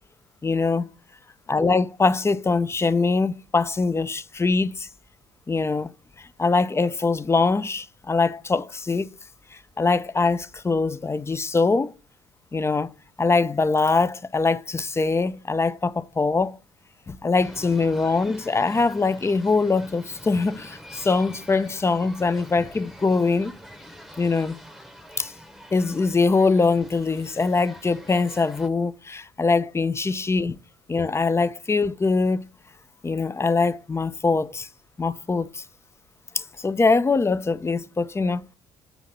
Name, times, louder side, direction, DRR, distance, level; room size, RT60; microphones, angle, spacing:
voice 1, 0.4-0.9 1.5-4.9 5.5-5.9 6.2-9.1 9.8-11.9 12.5-12.9 13.2-16.6 17.1-23.5 24.2-24.6 25.2-25.3 25.7-30.6 30.9-32.4 33.0-34.7 35.0-35.6 36.3-38.4, left 4 dB, 20° left, 0.4 m, -23 dB
sound 1, 17.3-28.7, equal, ahead, 0.9 m, -45 dB
7.9 x 2.8 x 5.8 m
hypercardioid pair, 55°, 14 cm